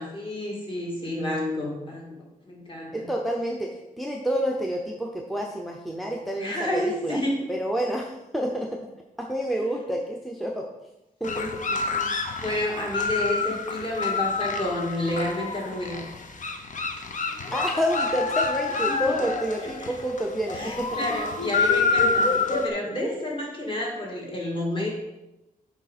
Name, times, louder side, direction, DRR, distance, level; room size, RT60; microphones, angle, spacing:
voice 1, 0.0-3.1 6.4-7.5 11.2-16.0 18.9-19.3 19.6-19.7 20.5-24.9, left 1 dB, 35° left, -3 dB, 2.1 m, -30 dB
voice 2, 2.9-7.2 7.5-8.8 9.2-10.7 11.2-11.5 17.5-21.0 22.0-22.3, equal, ahead, 0 dB, 0.6 m, -29 dB
sound 1, 11.2-22.7, left 4 dB, 55° left, 0.7 m, -27 dB
7.1 x 4.8 x 4.1 m, 0.94 s
wide cardioid pair, 120°, 15 cm